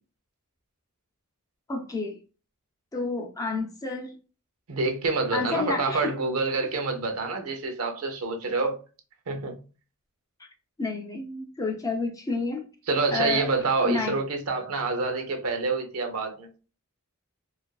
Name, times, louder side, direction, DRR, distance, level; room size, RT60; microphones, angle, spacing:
voice 1, 1.7-2.2 2.9-4.2 5.3-6.1 10.8-12.6 13.1-13.5 13.8-14.2, left 3 dB, 15° left, 0.3 m, -30 dB
voice 2, 4.7-8.8 9.3-9.6 12.9-16.5, right 3 dB, 70° right, 0.6 m, -27 dB
2.4 x 2.3 x 2.2 m
head